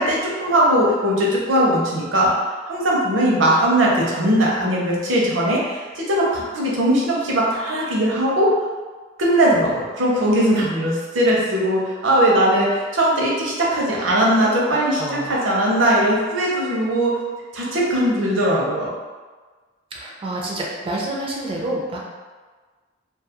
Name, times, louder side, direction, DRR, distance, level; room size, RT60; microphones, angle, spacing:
voice 1, 0.0-2.4 2.7-8.5 9.2-17.2 17.5-18.9, right 1 dB, 75° right, -4 dB, 0.6 m, -19 dB
voice 2, 15.0-15.4 19.9-22.0, right 1 dB, 30° right, -3 dB, 0.3 m, -28 dB
2.3 x 2.3 x 2.7 m, 1.4 s
head